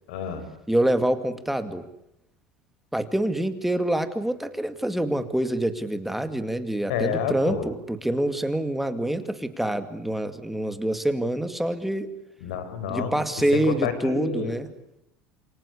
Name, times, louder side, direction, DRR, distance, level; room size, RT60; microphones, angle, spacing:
voice 1, 0.1-0.5 6.9-7.7 12.4-13.1 13.5-14.6, left 7 dB, 90° left, 11 dB, 5.7 m, -29 dB
voice 2, 0.7-1.8 2.9-12.1 12.9-14.7, right 1 dB, 5° right, 8 dB, 2.3 m, -26 dB
28.0 x 24.5 x 8.5 m, 0.81 s
supercardioid pair, 120°, 6 cm